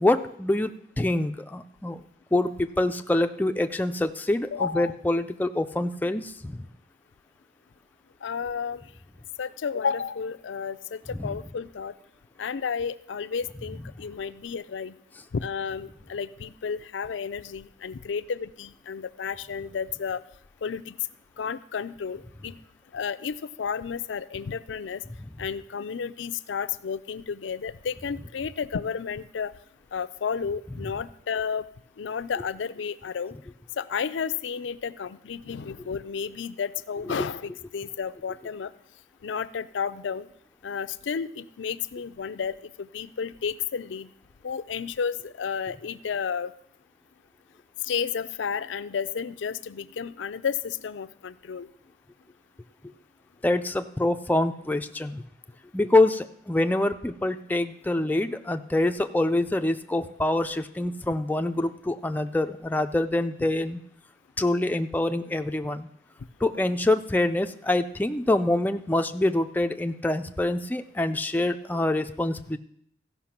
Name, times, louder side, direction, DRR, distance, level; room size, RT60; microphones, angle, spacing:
voice 1, 0.0-2.0 2.3-6.7 11.2-11.3 37.2-37.3 53.4-55.2 55.7-63.8 64.4-65.9 66.4-72.6, left 2 dB, 10° left, 7 dB, 0.4 m, -25 dB
voice 2, 4.5-4.9 8.2-8.8 9.4-11.9 12.4-14.9 15.3-20.2 20.6-21.0 21.4-22.6 22.9-25.0 25.4-29.5 29.9-31.7 32.0-33.4 33.8-38.7 39.2-40.3 40.6-44.1 44.4-46.5 47.8-51.7, left 6 dB, 85° left, 12 dB, 0.5 m, -32 dB
15.0 x 5.7 x 5.9 m, 0.68 s
head